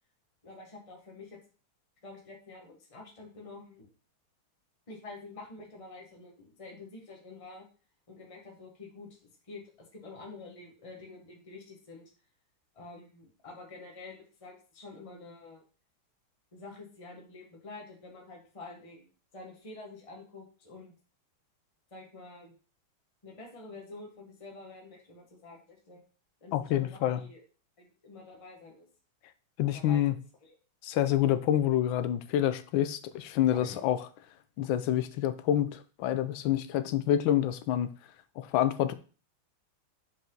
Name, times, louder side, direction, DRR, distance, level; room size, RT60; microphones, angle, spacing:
voice 1, 0.4-1.4 2.0-3.9 4.9-7.6 8.1-9.2 9.5-12.1 12.7-15.6 16.5-20.9 21.9-22.5 23.2-26.0 26.4-27.4 27.8-28.9 29.7-30.6 33.6-33.8, left 3 dB, 20° left, 1.4 m, -48 dB
voice 2, 26.5-27.2 29.6-30.1 30.8-34.0 34.6-37.9 38.4-38.9, left 11 dB, 75° left, 1.3 m, -27 dB
5.7 x 5.3 x 3.9 m
omnidirectional pair, 2.3 m